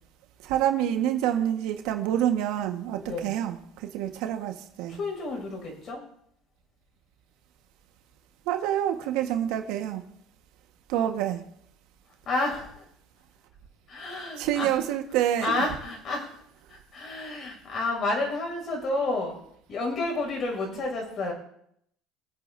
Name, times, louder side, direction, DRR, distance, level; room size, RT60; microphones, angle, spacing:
voice 1, 0.4-5.0 8.4-10.0 10.9-11.4 14.4-15.6, right 11 dB, 75° right, 5 dB, 1.5 m, -27 dB
voice 2, 3.0-3.3 4.9-6.0 12.2-12.8 13.9-14.7 15.4-16.3 16.7-19.4 19.7-21.3, left 2 dB, 50° left, 1 dB, 6.3 m, -30 dB
24.0 x 8.7 x 2.7 m, 0.71 s
supercardioid pair, 85°, 0 cm